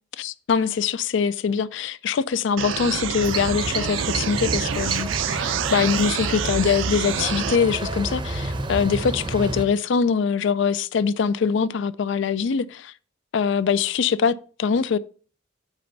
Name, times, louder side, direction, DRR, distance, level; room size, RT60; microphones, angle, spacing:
voice 1, 0.2-12.9 13.3-15.0, left 6 dB, 60° left, 0.4 m, -23 dB
sound 1, 2.6-7.6, right 8 dB, 70° right, 0.5 m, -27 dB
sound 2, 3.2-9.7, right 2 dB, 20° right, 0.6 m, -30 dB
8.9 x 3.4 x 5.3 m
head